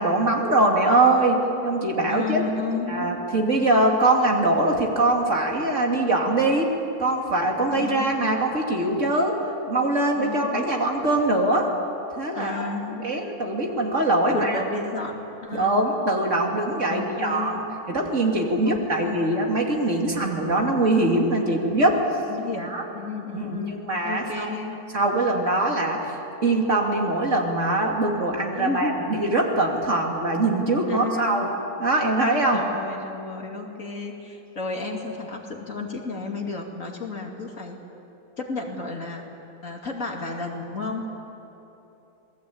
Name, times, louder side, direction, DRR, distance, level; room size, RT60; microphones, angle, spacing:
voice 1, 0.0-2.4 2.9-6.7 7.0-9.4 9.7-11.7 12.2-12.7 13.0-14.6 15.5-17.6 17.9-22.0 22.6-22.8 23.3-24.5 24.9-26.2 26.4-31.5 31.8-32.6, right 2 dB, 50° right, 0 dB, 3.2 m, -22 dB
voice 2, 2.1-3.2 7.7-8.3 10.1-10.8 12.3-13.1 14.3-15.9 16.9-17.8 18.6-19.4 19.8-20.0 22.3-24.8 28.5-29.0 30.9-31.6 32.5-37.8 38.4-39.2 39.6-41.1, left 3 dB, 55° left, 1 dB, 3.0 m, -32 dB
27.5 x 20.0 x 8.7 m, 3.0 s
omnidirectional pair, 1.6 m